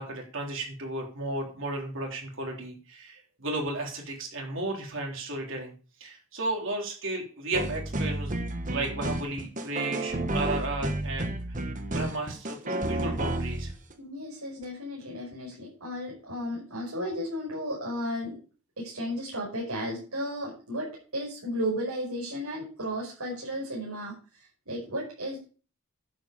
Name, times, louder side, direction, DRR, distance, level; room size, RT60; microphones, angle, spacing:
voice 1, 0.0-5.7 6.0-8.3 8.7-11.3 11.9-13.7, right 2 dB, 60° right, 0 dB, 3.6 m, -34 dB
sound 1, 7.5-13.9 14.6-14.7, right 1 dB, 35° right, 1.4 m, -31 dB
voice 2, 13.9-18.4 18.8-25.4, equal, 90° right, -4 dB, 5.8 m, -34 dB
11.0 x 8.3 x 5.2 m, 0.38 s
head